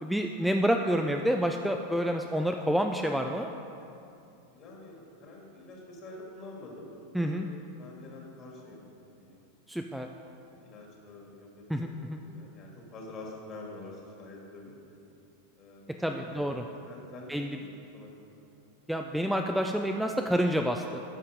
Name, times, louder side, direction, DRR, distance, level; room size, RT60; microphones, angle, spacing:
voice 1, 0.0-3.5 7.1-7.5 9.7-10.1 11.7-12.2 16.0-16.6 17.3-17.6 18.9-21.0, equal, ahead, 3 dB, 0.4 m, -28 dB
voice 2, 4.5-8.8 9.1-9.4 10.2-10.3 10.6-12.0 12.2-14.7 15.6-15.9 16.2-18.4, left 2 dB, 40° left, -1 dB, 2.1 m, -47 dB
10.0 x 5.7 x 5.1 m, 2.7 s
hypercardioid pair, 115°, 0 cm